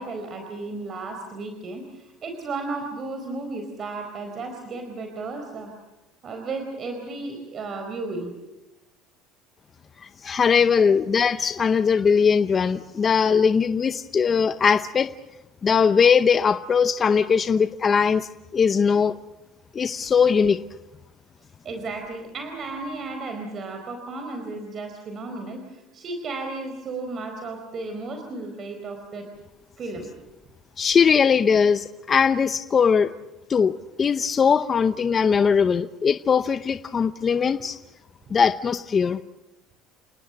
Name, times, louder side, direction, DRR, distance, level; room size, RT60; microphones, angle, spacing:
voice 1, 0.0-5.7 6.2-8.3 10.8-11.0 21.6-29.3 29.8-30.1, right 3 dB, 40° right, 5 dB, 4.3 m, -34 dB
voice 2, 10.0-15.1 15.6-19.2 19.7-20.6 30.8-33.1 33.5-37.8 38.3-39.2, left 6 dB, 30° left, 10 dB, 0.8 m, -20 dB
30.0 x 19.0 x 7.0 m, 1.0 s
supercardioid pair, 115°, 0 cm